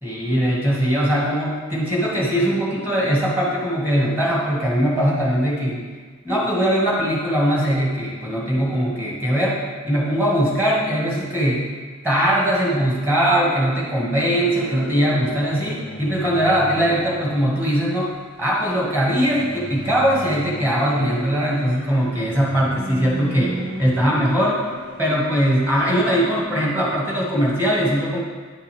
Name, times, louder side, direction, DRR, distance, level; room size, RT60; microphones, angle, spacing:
voice 1, 0.0-5.9 6.3-11.7 12.0-18.1 18.4-24.6 25.0-28.2, equal, 10° right, -6 dB, 2.0 m, -21 dB
sound 1, 14.1-17.7 19.0-26.4, equal, 65° right, 1.6 m, -35 dB
10.5 x 6.6 x 3.5 m, 1.5 s
head